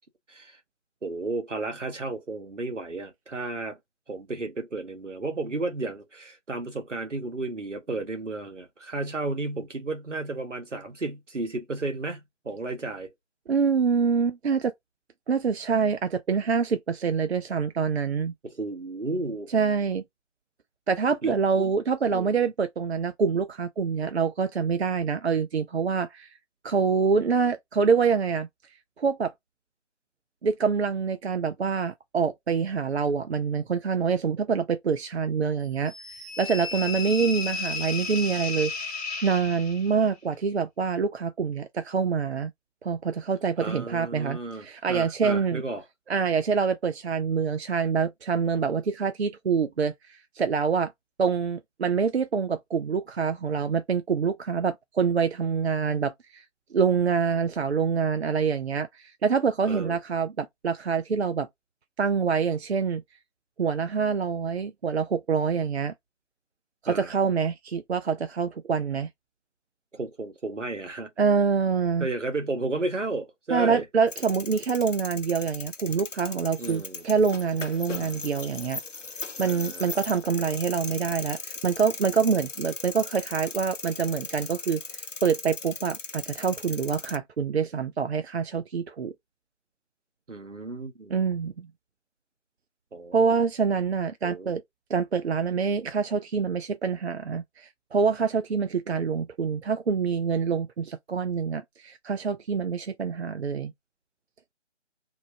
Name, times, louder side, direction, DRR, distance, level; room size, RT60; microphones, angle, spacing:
voice 1, 1.0-3.8 4.1-13.1 18.4-19.5 21.2-21.7 22.1-22.3 43.6-45.8 59.6-60.0 66.9-67.1 69.9-71.1 72.0-73.8 76.6-77.0 79.4-80.0 90.3-91.2 92.9-93.4 94.2-94.5, right 2 dB, 80° right, 1.1 m, -33 dB
voice 2, 13.5-14.7 15.3-18.3 19.5-20.0 20.9-26.3 26.6-28.5 29.0-29.3 30.4-35.9 36.4-38.9 39.2-42.5 42.8-45.6 46.1-50.9 51.2-56.4 56.7-61.5 62.0-63.0 63.6-65.9 66.8-69.1 71.2-72.1 73.5-78.8 79.4-89.1 91.1-91.7 93.1-94.6 94.9-103.7, right 6 dB, 60° right, 0.5 m, -26 dB
sound 1, 35.9-40.0, left 5 dB, 60° left, 1.1 m, -34 dB
sound 2, 74.1-87.2, left 4 dB, 85° left, 0.7 m, -38 dB
2.8 x 2.0 x 2.7 m
figure-of-eight pair, 150°, 36 cm